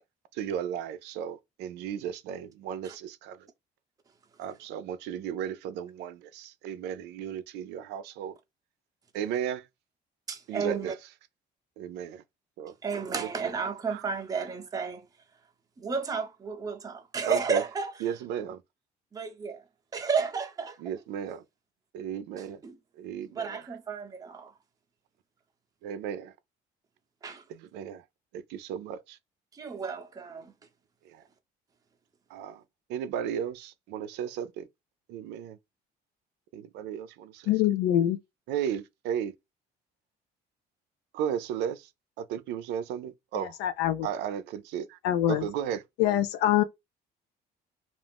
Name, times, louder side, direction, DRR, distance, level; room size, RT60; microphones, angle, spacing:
voice 1, 0.3-3.5 4.4-8.4 9.1-9.7 10.5-11.0 11.8-12.2 12.6-12.7 13.2-13.5 13.9-14.0 17.3-17.6 18.0-18.6 20.8-21.4 21.9-22.6 23.0-23.6 25.8-26.3 27.5-28.0 28.3-29.2 31.0-31.2 32.3-32.6 32.9-34.7 35.1-35.6 36.5-37.5 38.5-39.3 41.1-41.9 42.2-43.6 44.0-45.0 45.3-45.8, right 9 dB, 90° right, 0.5 m, -35 dB
voice 2, 10.3-10.9 12.8-15.1 15.8-17.9 19.1-19.6 19.9-20.8 22.4-22.8 23.3-24.5 27.2-27.4 29.5-30.5, right 5 dB, 20° right, 0.6 m, -32 dB
voice 3, 37.5-38.2 43.3-44.1 45.0-45.4 46.0-46.6, left 12 dB, 90° left, 0.4 m, -24 dB
2.4 x 2.4 x 3.4 m
cardioid pair, 110°, 17 cm